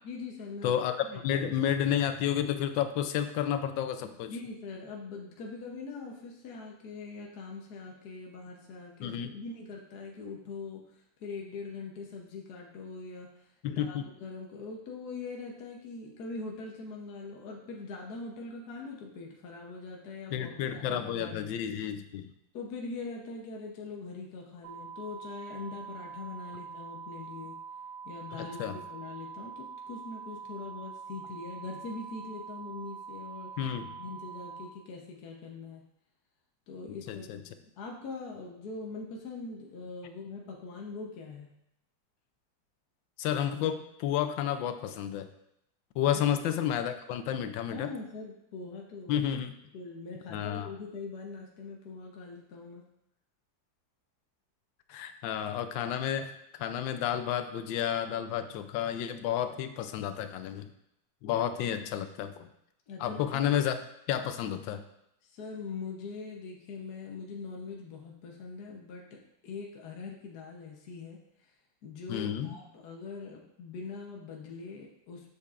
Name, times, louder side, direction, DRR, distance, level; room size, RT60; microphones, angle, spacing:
voice 1, 0.0-0.7 1.1-1.5 4.1-10.8 11.2-13.3 13.7-21.5 22.5-27.6 28.0-33.5 34.0-35.8 36.7-41.5 46.0-46.2 47.7-49.3 49.7-52.8 62.9-63.5 65.2-71.2 71.8-75.3, left 4 dB, 60° left, 0 dB, 1.3 m, -42 dB
voice 2, 0.6-4.3 9.0-9.3 13.6-14.0 20.3-22.3 28.3-28.8 33.6-34.0 36.9-37.4 43.2-45.3 45.9-47.9 49.1-49.6 50.3-50.7 54.9-60.7 61.2-62.5 63.0-63.8 64.1-64.8 72.1-72.6, left 10 dB, 85° left, 9 dB, 1.3 m, -31 dB
sound 1, 24.6-34.7, right 6 dB, 75° right, 1.6 m, -44 dB
8.2 x 6.5 x 2.4 m, 0.80 s
omnidirectional pair, 2.0 m